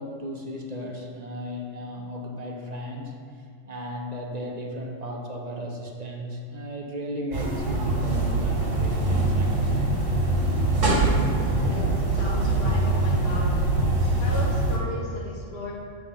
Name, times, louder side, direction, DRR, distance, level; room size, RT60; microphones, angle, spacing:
voice 1, 0.0-3.2 3.7-9.9, equal, 40° right, 0 dB, 0.7 m, -35 dB
sound 1, 7.3-14.8, right 2 dB, 80° right, 1.7 m, -23 dB
voice 2, 11.3-11.8 12.2-13.6 14.2-15.7, left 1 dB, 50° left, -4 dB, 1.2 m, -35 dB
7.6 x 3.7 x 5.5 m, 2.3 s
omnidirectional pair, 1.3 m